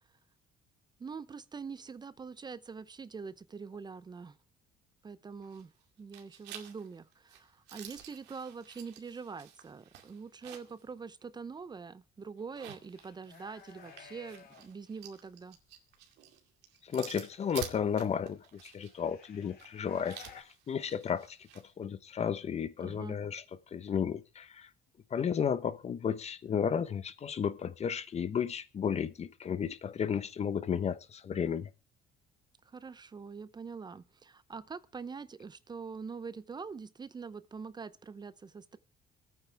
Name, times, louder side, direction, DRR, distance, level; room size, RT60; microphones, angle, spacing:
voice 1, 1.0-4.4 5.0-5.7 6.0-15.6 22.8-23.2 32.6-38.8, right 5 dB, 25° right, 0.7 m, -44 dB
sound 1, 5.4-5.8 6.1-10.8 11.2-11.3 12.4-21.7, right 10 dB, 90° right, 2.3 m, -50 dB
sound 2, 12.9-14.7 15.1-15.6 16.9-18.0 18.8-20.4, left 7 dB, 65° left, 3.1 m, -55 dB
voice 2, 16.8-23.4 23.7-24.7 25.1-31.7, left 7 dB, 40° left, 1.0 m, -33 dB
25.0 x 9.2 x 3.4 m
cardioid pair, 110°, 17 cm